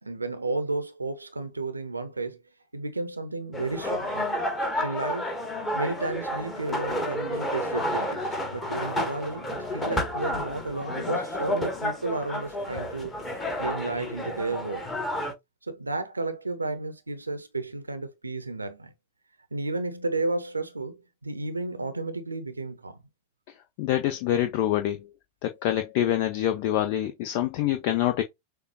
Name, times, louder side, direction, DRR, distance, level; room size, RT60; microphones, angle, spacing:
voice 1, 0.0-2.4 2.7-4.4 4.8-5.4 5.7-13.2 13.6-14.9 15.6-18.9 19.5-23.0, right 2 dB, 80° right, 0.7 m, -32 dB
sound 1, 3.5-15.3, left 1 dB, 15° left, 1.4 m, -31 dB
voice 2, 23.8-25.0 25.4-28.2, left 12 dB, 45° left, 0.6 m, -26 dB
6.5 x 2.3 x 2.9 m
figure-of-eight pair, 90°, 0 cm